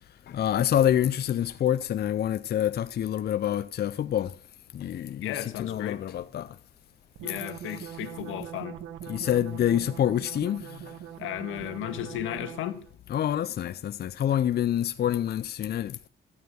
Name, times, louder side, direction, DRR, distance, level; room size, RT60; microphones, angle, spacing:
voice 1, 0.3-4.4 4.7-6.6 7.8-8.0 9.1-10.9 13.1-16.0, left 10 dB, 55° left, 0.6 m, -27 dB
voice 2, 5.2-6.0 7.2-8.8 11.2-12.8, left 12 dB, 90° left, 1.8 m, -34 dB
sound 1, 7.2-12.9, right 10 dB, 85° right, 1.4 m, -42 dB
15.5 x 9.5 x 6.4 m
cardioid pair, 90°, 20 cm